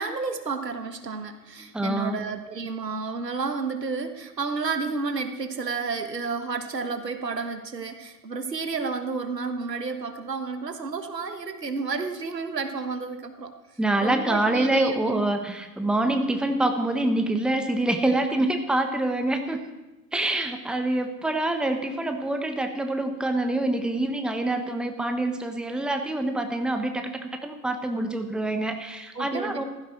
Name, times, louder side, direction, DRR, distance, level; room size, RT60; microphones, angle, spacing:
voice 1, 0.0-13.5 14.0-15.3 29.1-29.6, right 4 dB, 80° right, 8 dB, 1.6 m, -31 dB
voice 2, 1.7-2.2 13.8-19.6 20.1-29.6, right 2 dB, ahead, 6 dB, 1.2 m, -26 dB
16.0 x 15.0 x 4.6 m, 1.1 s
figure-of-eight pair, 85°, 49 cm